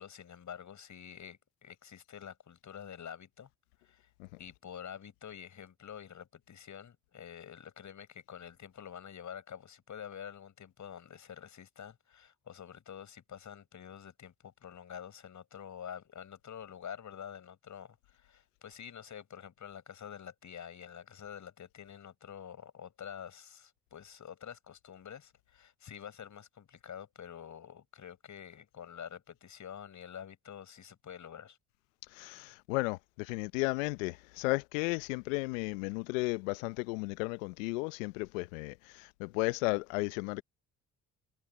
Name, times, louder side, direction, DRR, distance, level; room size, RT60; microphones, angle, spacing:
voice 1, 0.0-3.5 3.8-4.1 4.4-31.6, left 8 dB, 50° left, 6.8 m, -47 dB
voice 2, 32.1-40.4, left 25 dB, 80° left, 0.9 m, -34 dB
hypercardioid pair, 55°, 38 cm